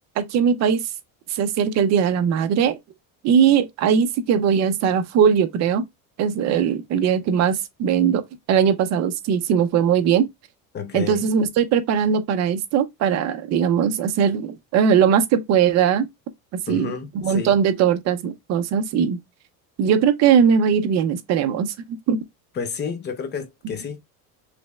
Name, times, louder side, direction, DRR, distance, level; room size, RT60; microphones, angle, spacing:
voice 1, 0.2-0.8 1.3-2.7 3.2-5.8 6.2-8.2 8.5-10.3 10.9-16.1 16.7-16.9 17.2-19.2 19.8-21.7 22.1-22.2, right 7 dB, 40° right, 0.6 m, -20 dB
voice 2, 10.7-11.3 16.7-17.5 22.5-24.0, left 6 dB, 25° left, 0.6 m, -31 dB
5.0 x 3.3 x 2.2 m
cardioid pair, 155°, 40 cm